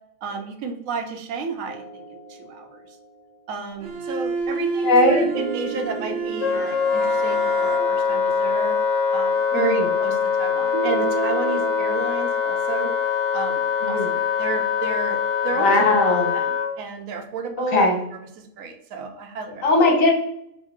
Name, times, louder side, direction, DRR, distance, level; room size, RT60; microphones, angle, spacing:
voice 1, 0.2-3.0 3.5-8.8 9.1-12.9 13.3-16.0 16.3-17.9 18.4-19.6, right 5 dB, 85° right, 5 dB, 1.0 m, -32 dB
sound 1, 1.7-3.2 5.2-8.4 10.7-12.1, right 6 dB, 30° right, 0.5 m, -33 dB
Bowed string instrument, 3.8-8.2, right 4 dB, 60° right, 0.9 m, -29 dB
voice 2, 4.8-5.3 9.5-9.9 13.8-14.1 15.6-16.3 17.6-18.0 19.6-20.1, left 2 dB, 80° left, 1 dB, 1.3 m, -19 dB
Wind instrument woodwind instrument, 6.4-16.7, left 6 dB, 45° left, 0.6 m, -23 dB
3.8 x 2.1 x 3.6 m, 0.74 s
omnidirectional pair, 1.4 m